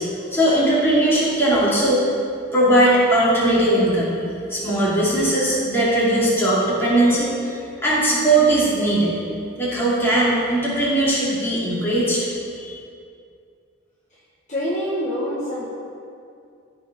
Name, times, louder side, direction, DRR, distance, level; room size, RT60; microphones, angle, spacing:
voice 1, 0.0-2.2 2.5-4.1 4.5-9.1 9.6-12.3 12.6-12.8, right 1 dB, 10° left, -9 dB, 2.7 m, -19 dB
voice 2, 14.5-15.7, equal, 35° left, -8 dB, 1.4 m, -25 dB
14.0 x 4.9 x 5.3 m, 2.4 s
head